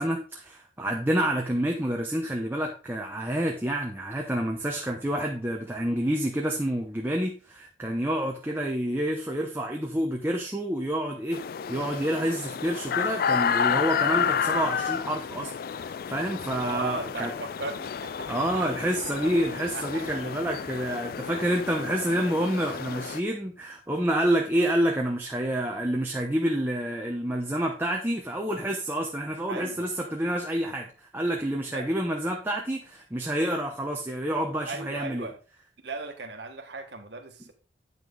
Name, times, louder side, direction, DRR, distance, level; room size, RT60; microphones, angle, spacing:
voice 1, 0.0-11.4 11.7-17.3 18.3-35.3, right 1 dB, 10° right, 1 dB, 0.9 m, -28 dB
sound 1, 11.3-23.2, left 7 dB, 50° left, 0.3 m, -31 dB
voice 2, 16.5-18.7 19.2-19.3 19.6-20.0 29.5-29.9 31.6-31.9 34.7-35.4 35.8-37.5, right 3 dB, 65° right, 4 dB, 1.6 m, -37 dB
9.0 x 5.9 x 3.9 m, 0.35 s
head